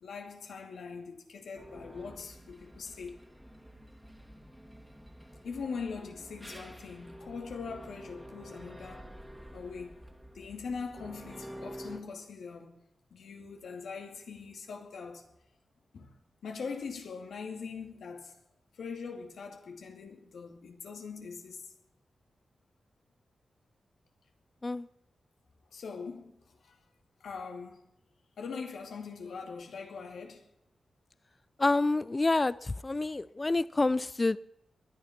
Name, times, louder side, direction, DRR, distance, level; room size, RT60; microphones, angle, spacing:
voice 1, 0.0-3.2 5.4-9.1 9.5-10.0 10.3-12.8 13.1-15.3 15.9-16.1 16.4-18.4 18.7-21.7 25.7-26.8 27.2-27.8 28.4-30.4, left 5 dB, 85° left, 2.4 m, -42 dB
sound 1, 1.5-12.0, equal, 5° right, 2.4 m, -49 dB
voice 2, 31.6-34.4, left 2 dB, 30° left, 0.5 m, -28 dB
20.5 x 10.5 x 5.9 m
cardioid pair, 65°, 0 cm